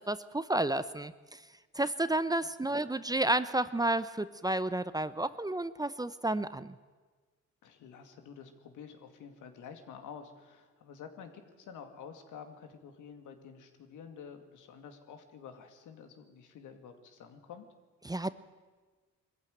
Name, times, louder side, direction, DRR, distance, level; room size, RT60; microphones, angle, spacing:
voice 1, 0.0-1.4 1.7-6.8 18.0-18.3, right 1 dB, 15° right, 14 dB, 0.7 m, -31 dB
voice 2, 7.6-17.7, left 7 dB, 85° left, 6 dB, 2.4 m, -49 dB
21.5 x 14.5 x 9.3 m, 1.4 s
cardioid pair, 90°, 30 cm